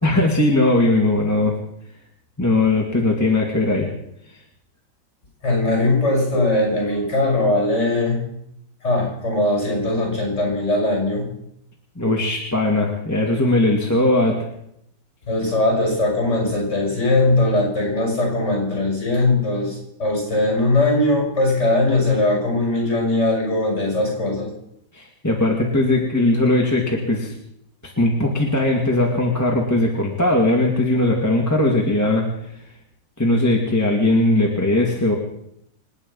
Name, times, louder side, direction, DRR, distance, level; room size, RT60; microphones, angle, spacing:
voice 1, 0.0-1.6 2.4-3.9 12.0-14.4 24.9-27.3 27.8-32.3 33.2-35.1, left 2 dB, 10° left, -1 dB, 2.2 m, -19 dB
voice 2, 5.4-8.2 8.8-11.3 15.3-24.5, left 2 dB, 35° left, 0 dB, 6.8 m, -20 dB
27.5 x 9.4 x 5.5 m, 0.75 s
omnidirectional pair, 2.0 m